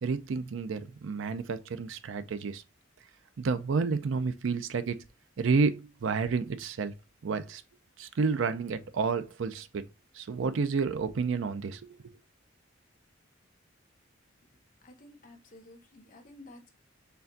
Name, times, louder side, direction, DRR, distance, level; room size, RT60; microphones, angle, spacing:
voice 1, 0.0-2.6 3.4-5.0 5.4-6.9 7.2-7.6 8.0-9.8 10.2-11.8, right 4 dB, 70° right, 0.4 m, -30 dB
voice 2, 14.8-16.7, left 1 dB, 40° left, 0.9 m, -52 dB
4.4 x 3.4 x 2.6 m
head